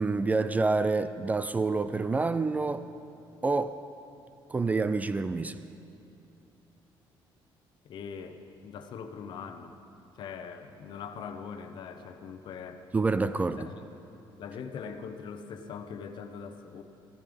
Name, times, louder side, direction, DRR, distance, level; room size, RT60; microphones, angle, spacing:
voice 1, 0.0-2.9 3.4-3.8 4.5-5.6 12.9-13.7, right 3 dB, 15° right, 0.3 m, -27 dB
voice 2, 7.8-9.7 10.2-12.8 13.6-13.7 14.4-16.8, left 6 dB, 60° left, 0.9 m, -41 dB
15.0 x 13.0 x 5.3 m
cardioid pair, 140°, 9 cm